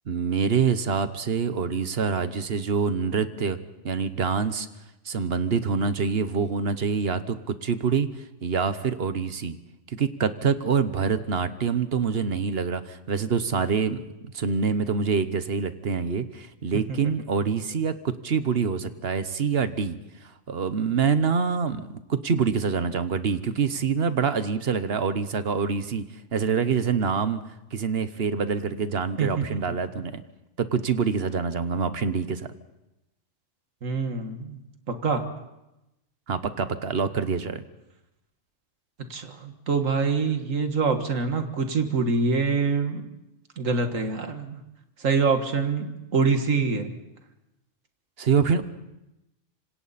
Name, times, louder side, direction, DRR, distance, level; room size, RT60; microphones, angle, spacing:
voice 1, 0.1-3.6 3.8-4.7 5.0-8.1 8.4-9.6 9.9-14.1 14.3-20.0 20.5-26.0 26.3-27.4 27.7-30.2 30.6-32.5 36.3-37.6 48.2-48.6, right 5 dB, 55° right, 11 dB, 1.2 m, -25 dB
voice 2, 29.2-29.8 33.8-34.6 34.9-35.2 39.1-43.1 43.6-44.6 45.0-46.9, right 4 dB, 90° right, 6 dB, 2.1 m, -25 dB
26.0 x 26.0 x 4.2 m, 0.93 s
omnidirectional pair, 1.3 m